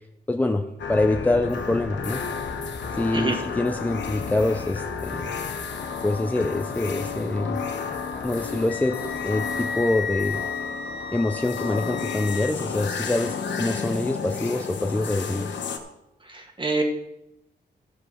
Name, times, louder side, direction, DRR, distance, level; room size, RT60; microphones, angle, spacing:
voice 1, 0.3-2.3 2.9-5.3 6.0-7.6 8.2-10.5 11.1-15.6, left 2 dB, 10° left, 4 dB, 0.6 m, -25 dB
sound 1, 0.8-15.8, left 6 dB, 85° left, 1.1 m, -32 dB
Wind instrument woodwind instrument, 8.7-12.5, left 6 dB, 65° left, 1.5 m, -33 dB
voice 2, 16.2-16.8, right 3 dB, 25° right, 3 dB, 1.7 m, -26 dB
13.5 x 5.3 x 6.3 m, 0.91 s
wide cardioid pair, 125°, 18 cm